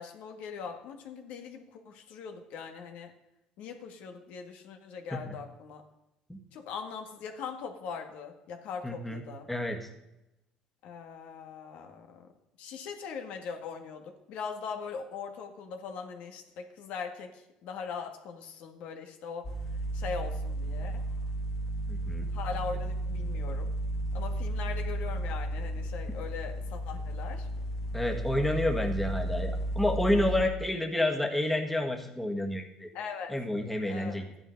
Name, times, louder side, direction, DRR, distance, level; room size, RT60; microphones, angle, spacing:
voice 1, 0.0-3.1 3.6-5.8 6.5-9.5 10.8-12.3 12.6-19.6 19.9-21.0 22.3-23.7 24.1-27.5 32.9-33.4 33.8-34.3, left 6 dB, 70° left, 5 dB, 1.7 m, -40 dB
voice 2, 8.8-9.2 9.5-9.8 21.9-22.3 27.9-32.9 33.3-34.2, left 1 dB, 5° left, 2 dB, 1.7 m, -29 dB
sound 1, 19.4-30.4, right 1 dB, 25° left, 1.7 m, -33 dB
12.5 x 9.8 x 5.3 m, 0.91 s
cardioid pair, 110°, 2 cm